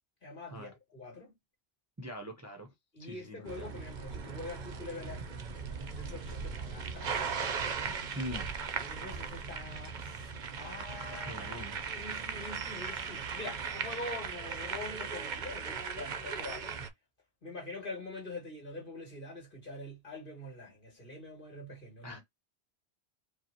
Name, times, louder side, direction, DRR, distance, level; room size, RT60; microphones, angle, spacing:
voice 1, 0.2-1.3 2.9-7.6 8.7-10.3 10.6-16.8 17.4-22.2, left 2 dB, 55° left, 2.4 m, -45 dB
voice 2, 2.0-2.7 3.0-3.8 8.1-8.5 11.1-11.8 22.0-22.2, equal, 20° right, 0.7 m, -42 dB
sound 1, 3.4-16.9, right 5 dB, 50° right, 0.8 m, -38 dB
5.0 x 2.4 x 2.9 m
omnidirectional pair, 1.1 m